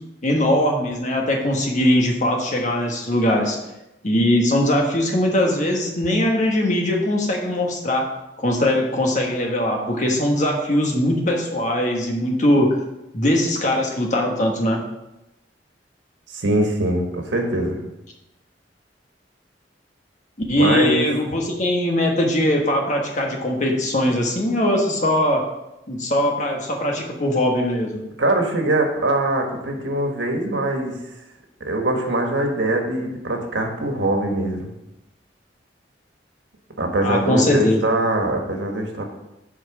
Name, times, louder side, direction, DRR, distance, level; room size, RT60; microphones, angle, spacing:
voice 1, 0.2-3.6 4.0-8.1 8.4-12.8 13.1-14.8 20.5-25.5 25.9-28.0 37.0-37.9, left 1 dB, 40° left, 1 dB, 1.4 m, -20 dB
voice 2, 16.3-17.8 20.6-21.1 28.2-30.9 31.6-34.7 36.8-39.0, right 1 dB, 85° right, 2 dB, 1.4 m, -22 dB
7.7 x 4.5 x 5.9 m, 0.92 s
head